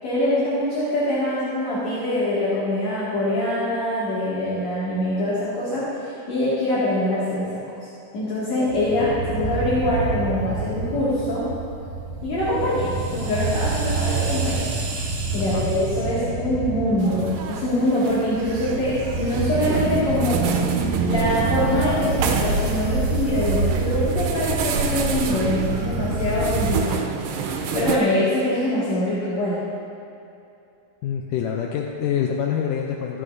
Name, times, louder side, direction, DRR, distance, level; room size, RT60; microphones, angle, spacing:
voice 1, 0.0-7.6 8.1-11.5 12.2-14.7 15.3-20.4 21.1-27.0 27.3-29.6, left 1 dB, 50° left, -10 dB, 3.4 m, -24 dB
sound 1, 8.7-26.8, right 4 dB, 60° right, 2.6 m, -27 dB
voice 2, 15.3-15.7 31.0-33.2, left 8 dB, 80° left, 0 dB, 2.1 m, -26 dB
sound 2, 17.0-28.0, right 5 dB, 90° right, 2.6 m, -29 dB
25.0 x 8.6 x 2.7 m, 2.7 s
omnidirectional pair, 4.0 m